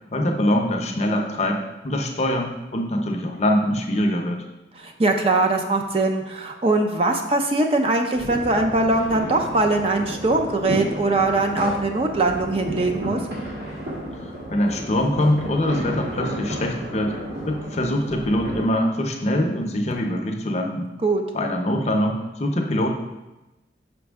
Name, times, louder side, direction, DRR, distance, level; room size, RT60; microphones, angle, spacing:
voice 1, 0.1-4.4 14.5-17.1 17.5-20.9 21.3-22.9, left 1 dB, 35° left, 3 dB, 0.6 m, -23 dB
voice 2, 4.8-13.2 21.0-21.2, right 2 dB, 30° right, 3 dB, 0.5 m, -21 dB
sound 1, 8.1-18.6, right 1 dB, 70° right, 2.1 m, -32 dB
5.7 x 5.2 x 3.4 m, 1.0 s
head